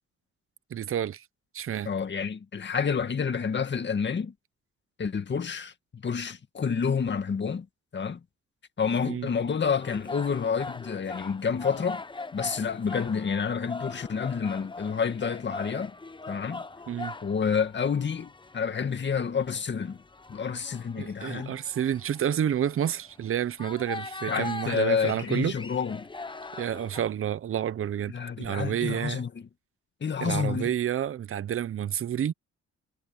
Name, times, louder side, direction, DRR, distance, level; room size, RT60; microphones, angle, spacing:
voice 1, 0.7-1.2 1.5-1.9 9.0-9.3 16.9-17.1 21.0-25.5 26.6-29.2 30.2-32.3, right 10 dB, 45° right, 0.8 m, -29 dB
voice 2, 1.9-4.3 5.0-7.7 7.9-8.2 8.8-12.0 12.3-15.9 16.3-16.6 17.2-20.0 20.3-21.6 24.3-26.1 28.1-29.5 30.0-30.7, left 6 dB, 35° left, 2.0 m, -29 dB
sound 1, 9.5-27.0, left 3 dB, 15° left, 1.0 m, -41 dB
cardioid pair, 90°, 30 cm